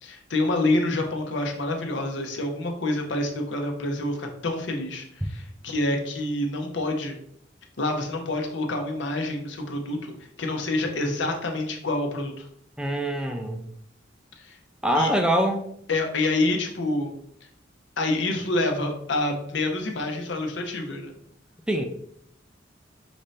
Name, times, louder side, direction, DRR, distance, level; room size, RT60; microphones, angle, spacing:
voice 1, 0.0-7.2 7.8-12.5 14.4-14.6 14.9-15.1 15.9-17.1 18.0-21.2, left 2 dB, 75° left, 2 dB, 0.8 m, -27 dB
voice 2, 12.8-13.6 14.8-15.7 21.7-21.9, right 1 dB, 5° right, 4 dB, 0.4 m, -24 dB
5.1 x 2.7 x 3.2 m, 0.68 s
head